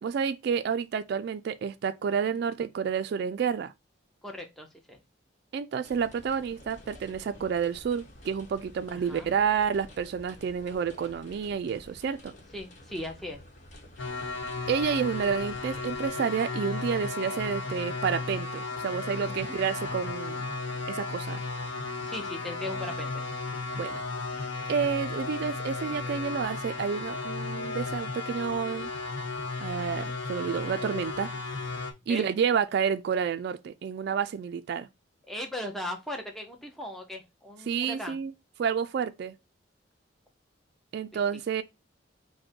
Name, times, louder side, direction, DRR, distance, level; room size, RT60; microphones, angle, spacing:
voice 1, 0.0-3.7 5.5-12.3 14.7-20.5 20.9-21.4 23.8-24.0 24.3-28.9 29.6-31.3 32.1-34.9 37.7-38.3 38.6-39.3 40.9-41.6, right 7 dB, 60° right, 0.3 m, -30 dB
voice 2, 4.2-5.0 8.9-9.4 12.5-13.4 19.4-19.6 22.0-23.2 32.1-32.3 35.3-38.2, left 1 dB, ahead, 0.7 m, -38 dB
sound 1, 5.8-16.1, left 1 dB, 40° left, 1.1 m, -51 dB
sound 2, 14.0-31.9, left 3 dB, 75° left, 0.9 m, -34 dB
5.1 x 2.1 x 4.3 m
head